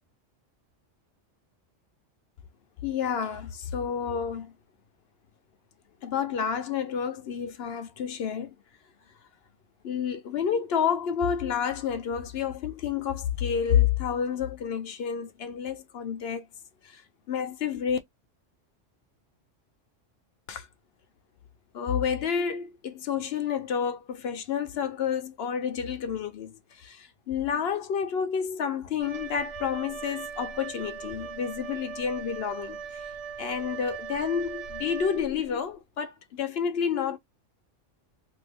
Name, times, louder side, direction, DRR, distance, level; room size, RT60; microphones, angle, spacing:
voice 1, 2.8-4.5 6.0-8.5 9.8-16.5 16.8-17.0 17.3-18.0 20.5-20.7 21.7-33.0 33.4-37.2, left 7 dB, 65° left, 0.7 m, -29 dB
Wind instrument woodwind instrument, 29.0-35.6, right 6 dB, 70° right, 1.0 m, -39 dB
2.6 x 2.6 x 3.3 m
omnidirectional pair, 1.3 m